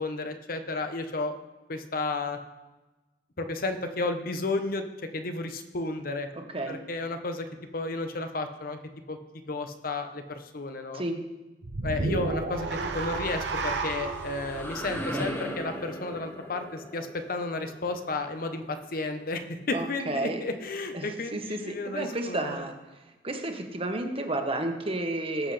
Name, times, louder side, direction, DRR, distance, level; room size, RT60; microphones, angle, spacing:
voice 1, 0.0-1.4 1.7-2.4 3.4-6.3 6.7-7.5 7.7-8.8 9.1-11.0 11.8-22.6, left 3 dB, 55° left, 7 dB, 1.0 m, -32 dB
sound 1, 11.6-16.0, right 3 dB, 80° right, 0.9 m, -32 dB
sound 2, 14.1-19.6, equal, 10° left, 1.1 m, -39 dB
voice 2, 14.9-15.3 19.7-20.4 20.9-22.7 23.2-25.5, right 2 dB, 35° right, 4 dB, 1.2 m, -32 dB
18.5 x 7.8 x 3.3 m, 1.1 s
head